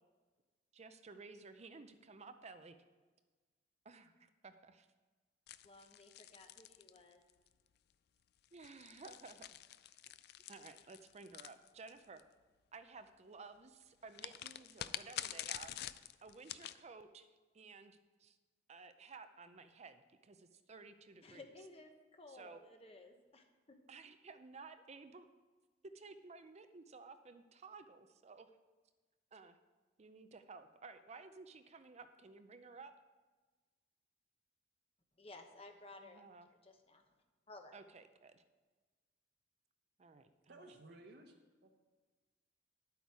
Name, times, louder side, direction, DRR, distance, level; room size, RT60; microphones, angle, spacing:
voice 1, 0.7-2.8 3.8-4.9 8.5-9.5 10.5-12.2 12.7-15.7 16.2-17.3 17.5-18.4 18.7-21.5 22.3-22.6 23.9-25.3 25.9-28.5 29.3-29.6 30.0-32.9 36.0-36.5 37.7-38.5 40.0-40.3, right 4 dB, 35° right, 10 dB, 0.5 m, -55 dB
sound 1, 5.5-7.5 8.4-12.2 14.1-16.8, left 12 dB, 60° left, 0.4 m, -47 dB
voice 2, 5.6-7.2 21.2-23.8 35.2-36.2 36.6-37.0 37.5-37.8, left 2 dB, 30° left, 5 dB, 1.1 m, -56 dB
voice 3, 40.5-41.3 41.6-41.7, right 2 dB, 60° right, 2 dB, 1.2 m, -56 dB
11.0 x 8.2 x 4.7 m, 1.3 s
head